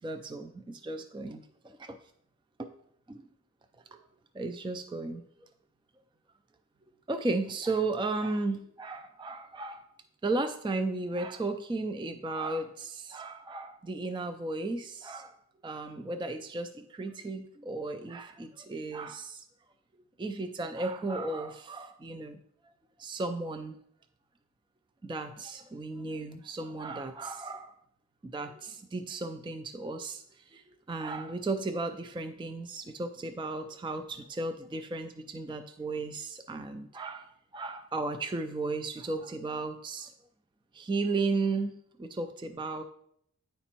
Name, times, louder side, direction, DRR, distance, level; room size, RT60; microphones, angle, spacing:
voice 1, 0.0-2.0 2.6-2.7 4.3-5.2 7.1-9.9 10.2-15.4 15.6-19.5 20.2-22.4 23.0-23.8 25.0-27.7 28.2-40.1 40.7-41.7 42.0-42.8, right 3 dB, 15° right, 8 dB, 0.4 m, -35 dB
9.9 x 4.1 x 2.9 m, 0.70 s
wide cardioid pair, 45°, 30 cm